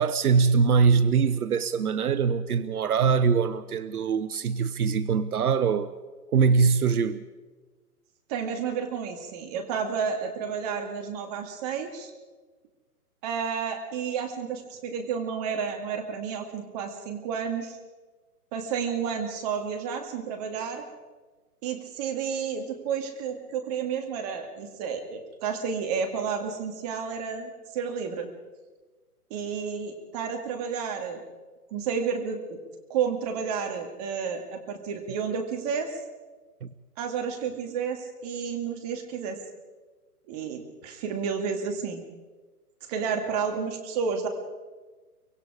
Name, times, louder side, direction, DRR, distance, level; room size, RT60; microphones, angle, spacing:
voice 1, 0.0-5.9 6.3-7.2 36.6-36.7, right 5 dB, 70° right, 1.0 m, -23 dB
voice 2, 8.3-12.1 13.2-17.8 18.5-20.8 21.6-28.3 29.3-31.2 31.7-32.6 32.9-36.0 37.0-39.4 40.3-42.0 42.9-44.3, right 6 dB, 25° right, 2.1 m, -31 dB
24.5 x 23.5 x 4.9 m
hypercardioid pair, 150°, 46 cm